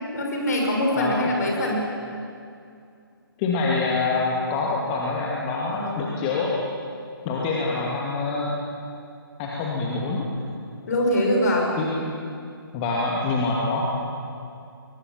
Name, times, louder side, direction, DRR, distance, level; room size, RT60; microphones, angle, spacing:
voice 1, 0.1-1.8 5.7-6.1 10.9-11.7, left 1 dB, 45° left, 0 dB, 6.0 m, -23 dB
voice 2, 1.0-1.3 3.4-6.6 7.2-8.6 9.4-10.3 11.8-11.9 12.7-13.9, left 3 dB, 20° left, -3 dB, 2.4 m, -25 dB
22.5 x 21.0 x 7.4 m, 2.5 s
figure-of-eight pair, 140°, 13 cm